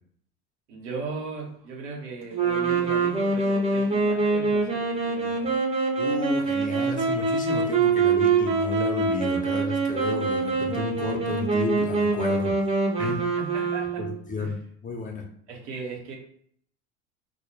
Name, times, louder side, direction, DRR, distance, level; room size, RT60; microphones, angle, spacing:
voice 1, 0.7-5.5 13.0-14.1 14.4-14.5 15.5-16.1, right 4 dB, 80° right, 0 dB, 0.9 m, -37 dB
sound 1, 2.3-14.2, right 4 dB, 20° right, 0.6 m, -24 dB
voice 2, 6.0-12.5 13.0-13.2 14.0-15.2, left 3 dB, 25° left, 2 dB, 0.6 m, -32 dB
2.1 x 2.1 x 3.1 m, 0.63 s
hypercardioid pair, 80°, 36 cm